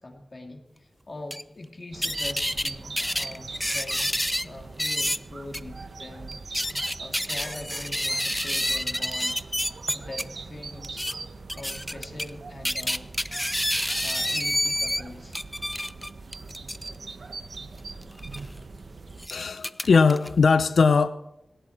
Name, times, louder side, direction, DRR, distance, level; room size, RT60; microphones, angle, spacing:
voice 1, 0.0-9.6 9.9-11.0 11.5-13.1 13.8-15.4, left 2 dB, 40° left, 2 dB, 2.8 m, -42 dB
sound 1, 1.3-1.4 2.0-2.7 3.0-4.5 4.8-5.2 5.5-5.6 6.3-10.2 10.8-11.1 11.5-12.3 12.7-15.0 15.3-16.9 18.2-18.4 19.2-20.3, equal, 5° left, 0.5 m, -28 dB
sound 2, 1.9-19.3, right 3 dB, 65° right, 1.2 m, -42 dB
voice 2, 19.3-21.1, left 5 dB, 85° left, 11 dB, 0.7 m, -20 dB
18.5 x 17.5 x 4.5 m, 0.78 s
wide cardioid pair, 100°, 0 cm